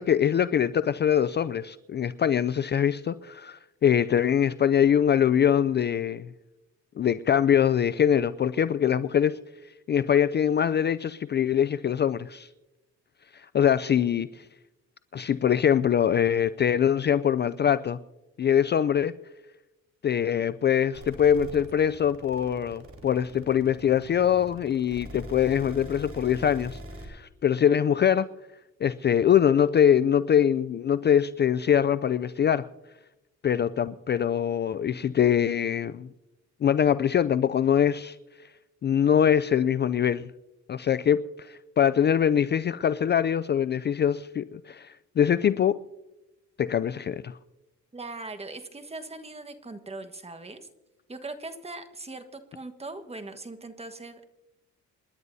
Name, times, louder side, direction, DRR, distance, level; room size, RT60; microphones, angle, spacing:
voice 1, 0.0-6.3 7.0-9.4 9.9-12.5 13.3-14.4 15.1-18.0 18.4-19.1 20.0-28.3 28.8-32.7 33.4-36.1 36.6-38.2 38.8-40.3 40.7-45.8 46.6-47.3, left 9 dB, 35° left, 0.4 m, -23 dB
sound 1, 20.9-27.1, right 1 dB, 45° right, 4.0 m, -42 dB
voice 2, 47.9-50.7 51.1-54.3, right 2 dB, 20° right, 1.4 m, -40 dB
28.5 x 11.0 x 2.7 m
cardioid pair, 90°, 30 cm